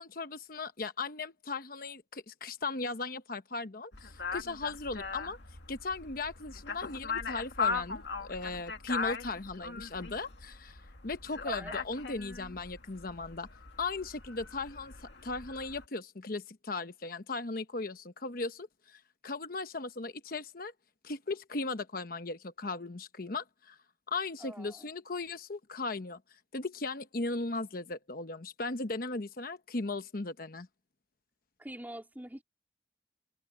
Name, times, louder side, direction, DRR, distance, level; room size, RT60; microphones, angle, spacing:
voice 1, 0.0-5.4 5.7-10.8 11.0-13.5 13.8-20.7 21.0-23.8 24.1-30.7, left 3 dB, 55° left, 1.0 m, -37 dB
sound 1, 3.9-15.9, left 5 dB, 80° left, 2.2 m, -39 dB
voice 2, 11.4-11.7 24.4-24.9 31.6-32.4, right 1 dB, 10° right, 2.8 m, -44 dB
head